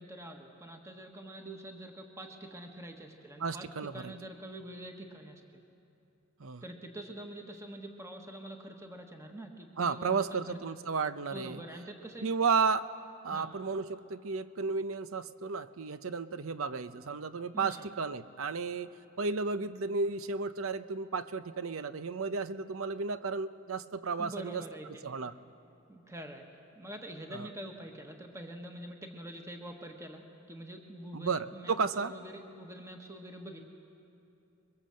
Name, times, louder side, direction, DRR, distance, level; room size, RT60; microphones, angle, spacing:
voice 1, 0.0-3.7 3.9-5.6 6.6-10.6 11.3-12.3 13.3-13.5 17.5-17.9 24.2-25.0 25.9-26.5 26.7-33.6, right 1 dB, 15° right, 3 dB, 1.4 m, -45 dB
voice 2, 3.4-4.1 6.4-6.6 9.8-11.6 12.2-12.9 13.2-18.9 19.2-25.3 27.3-27.5 31.1-32.1, right 4 dB, 80° right, 13 dB, 0.7 m, -33 dB
24.0 x 23.0 x 7.6 m, 2.8 s
head